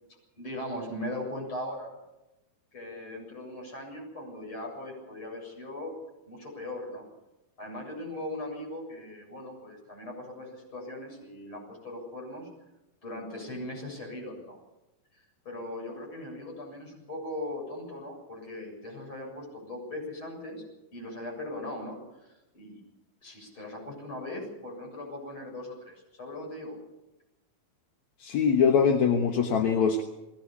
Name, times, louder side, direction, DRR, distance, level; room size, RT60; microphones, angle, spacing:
voice 1, 0.1-2.0 2.7-5.9 6.3-7.1 7.6-12.5 13.0-14.6 15.1-20.6 20.9-22.8 23.2-26.8, left 1 dB, 35° left, -1 dB, 8.5 m, -39 dB
voice 2, 28.2-30.0, left 6 dB, 60° left, 4 dB, 2.3 m, -23 dB
20.5 x 17.5 x 8.4 m, 0.98 s
omnidirectional pair, 4.1 m